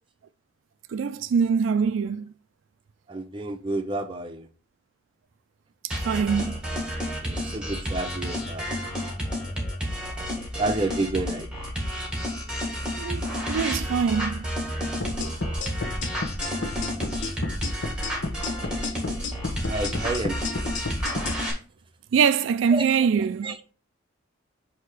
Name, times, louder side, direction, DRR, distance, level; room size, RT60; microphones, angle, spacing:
voice 1, 0.9-2.3 6.1-6.6 12.9-13.2 13.5-14.4 22.1-23.5, right 6 dB, 80° right, 0.3 m, -23 dB
voice 2, 3.1-4.5 7.2-8.6 10.6-11.5 19.7-20.4 22.7-22.8 23.4-23.7, right 2 dB, 25° right, 0.7 m, -29 dB
sound 1, 5.9-21.5, equal, 5° right, 1.7 m, -30 dB
sound 2, 15.0-21.4, left 2 dB, 70° left, 0.9 m, -31 dB
7.9 x 2.9 x 4.7 m
head